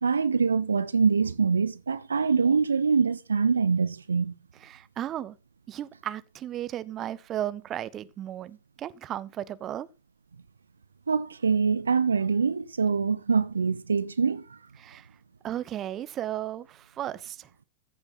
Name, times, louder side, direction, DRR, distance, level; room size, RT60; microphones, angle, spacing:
voice 1, 0.0-4.3 11.1-14.6, right 5 dB, 75° right, 0.5 m, -24 dB
voice 2, 4.6-5.4 5.7-9.9 14.8-15.1 15.4-17.5, right 12 dB, 30° right, 0.7 m, -35 dB
14.5 x 6.9 x 4.1 m
figure-of-eight pair, 90°, 0 cm